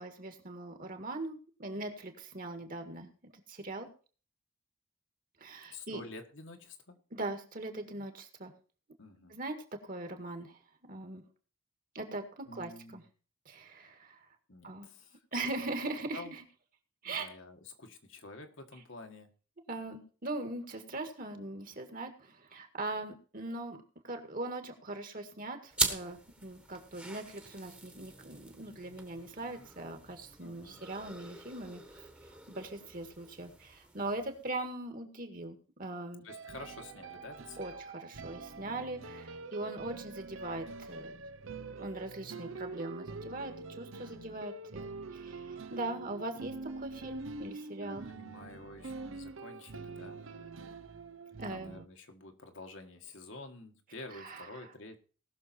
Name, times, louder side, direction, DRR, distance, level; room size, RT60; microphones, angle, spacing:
voice 1, 0.0-3.9 5.4-6.0 7.1-8.5 9.3-10.6 10.9-11.2 11.9-13.0 13.5-14.2 14.6-14.9 15.3-16.4 17.0-17.3 19.7-32.1 32.5-36.3 37.6-41.1 41.7-48.0 51.4-51.7 54.2-54.5, right 2 dB, 40° right, 5 dB, 1.9 m, -41 dB
voice 2, 5.7-7.0 9.0-9.4 12.4-13.1 14.5-15.7 16.1-16.3 17.0-19.3 30.4-30.8 36.2-37.8 39.6-40.0 44.0-44.4 44.8-44.9 47.8-50.2 51.5-55.0, left 2 dB, 65° left, 4 dB, 1.7 m, -49 dB
sound 1, 25.7-34.7, right 2 dB, 5° right, 1.4 m, -41 dB
sound 2, 36.3-51.8, right 3 dB, 70° right, 0.8 m, -45 dB
19.0 x 6.5 x 4.4 m, 0.38 s
head